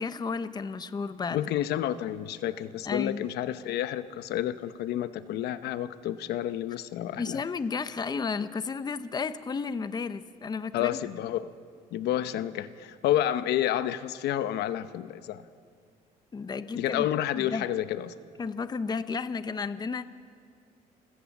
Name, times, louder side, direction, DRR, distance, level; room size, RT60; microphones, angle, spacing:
voice 1, 0.0-1.4 2.8-3.2 7.2-11.0 16.3-17.1 17.3-17.7 18.4-20.0, left 5 dB, 25° left, 13 dB, 0.8 m, -32 dB
voice 2, 1.3-7.4 10.7-11.5 11.9-15.4 16.7-18.1, left 12 dB, 75° left, 12 dB, 0.9 m, -30 dB
30.0 x 16.0 x 7.2 m, 2.1 s
cardioid pair, 110°, 17 cm